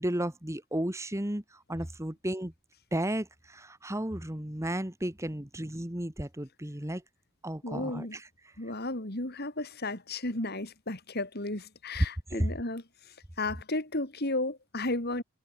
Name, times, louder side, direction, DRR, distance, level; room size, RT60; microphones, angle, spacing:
voice 1, 0.0-1.4 1.7-2.5 2.9-7.0 7.4-8.3 12.3-12.5, right 1 dB, 15° right, 1.5 m, -33 dB
voice 2, 7.6-8.2 8.6-12.8 13.4-15.2, left 2 dB, 45° left, 3.1 m, -33 dB
head